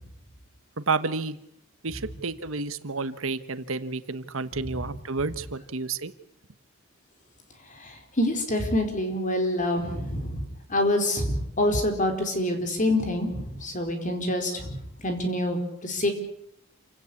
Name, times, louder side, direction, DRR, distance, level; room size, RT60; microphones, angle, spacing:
voice 1, 0.8-1.4 1.8-6.1, right 4 dB, 65° right, 12 dB, 1.2 m, -30 dB
voice 2, 7.8-10.4 10.7-14.8 15.0-16.1, left 1 dB, 35° left, 5 dB, 4.4 m, -26 dB
28.0 x 17.0 x 8.6 m, 0.76 s
head